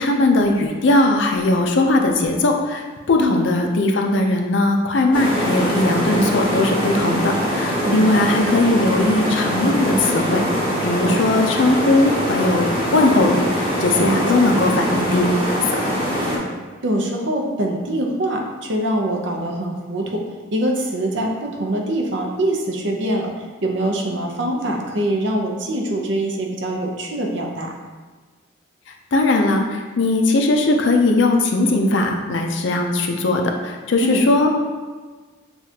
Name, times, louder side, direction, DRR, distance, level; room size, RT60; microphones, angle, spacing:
voice 1, 0.0-10.4 10.8-15.3 29.1-34.5, left 2 dB, 65° left, 3 dB, 0.5 m, -19 dB
sound 1, 5.1-16.4, equal, 25° right, 1.1 m, -23 dB
voice 2, 7.8-8.2 14.0-14.5 16.8-20.2 20.5-23.3 23.6-27.7 34.0-34.2, right 1 dB, 65° right, 1 dB, 0.6 m, -23 dB
7.0 x 2.4 x 2.8 m, 1.4 s
head